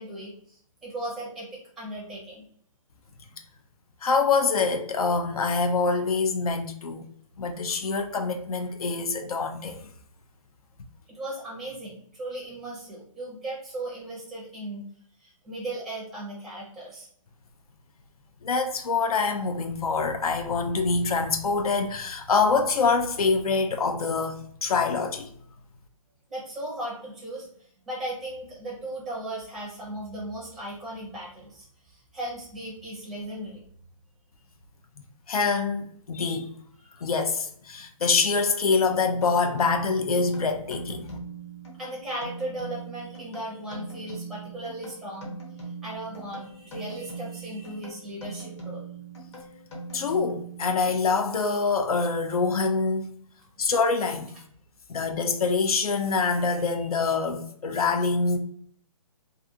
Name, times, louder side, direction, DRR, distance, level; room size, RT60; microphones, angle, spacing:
voice 1, 0.0-1.5 1.8-2.4 11.1-14.8 15.2-17.1 26.3-27.5 27.9-33.6 41.8-45.3 45.8-48.8, right 1 dB, ahead, 0.5 m, -37 dB
voice 2, 4.0-7.1 7.4-9.9 18.4-25.3 35.3-36.5 37.0-41.2 49.9-53.2 53.6-54.3 54.9-58.4, left 4 dB, 90° left, 0.5 m, -25 dB
sound 1, 39.2-51.4, right 3 dB, 50° left, 1.0 m, -41 dB
2.4 x 2.4 x 2.6 m
hypercardioid pair, 155°, 18 cm